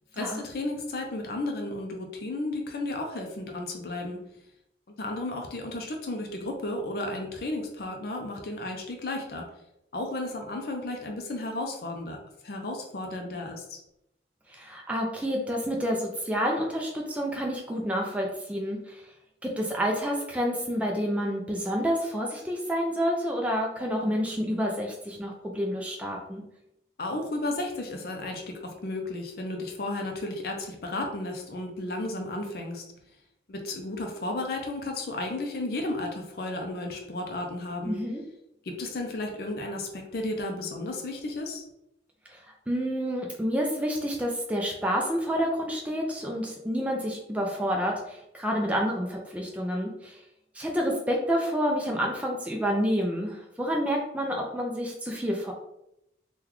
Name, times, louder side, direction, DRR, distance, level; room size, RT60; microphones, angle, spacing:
voice 1, 0.1-4.2 5.0-9.5 9.9-12.2 12.4-13.8 27.0-32.8 33.5-38.0 38.6-41.6, left 2 dB, 55° left, 2 dB, 0.5 m, -33 dB
voice 2, 14.5-19.0 19.4-26.4 37.9-38.2 42.3-42.4 42.7-50.2 50.5-55.5, equal, 10° right, -1 dB, 0.3 m, -29 dB
3.7 x 2.2 x 2.9 m, 0.83 s
head